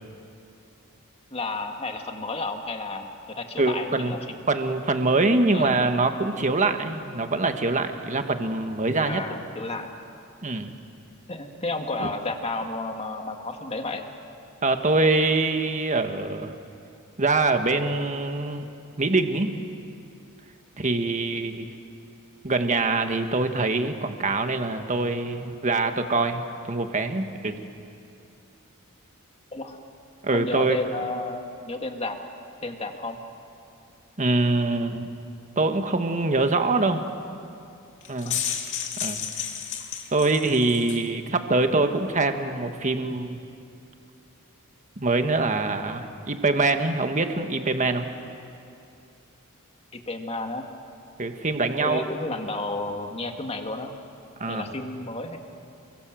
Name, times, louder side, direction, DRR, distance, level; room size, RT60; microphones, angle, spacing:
voice 1, 1.3-4.4 5.5-5.8 9.1-9.9 11.3-14.1 29.5-29.8 30.3-32.2 32.6-33.2 38.2-38.6 49.9-50.7 51.8-53.9 54.5-55.4, left 2 dB, 30° left, 4 dB, 2.0 m, -32 dB
voice 2, 3.6-4.2 4.5-9.2 10.4-10.7 12.0-12.1 14.6-16.5 17.2-18.7 19.0-19.6 20.8-21.7 22.4-27.6 30.2-30.8 34.2-35.1 35.6-37.0 38.1-38.4 39.0-39.2 40.1-43.4 45.0-48.1 51.2-52.0 54.4-54.7, right 3 dB, 35° right, 6 dB, 1.5 m, -24 dB
sound 1, 38.0-41.1, left 8 dB, 55° left, 2.3 m, -32 dB
29.5 x 23.0 x 7.7 m, 2.6 s
head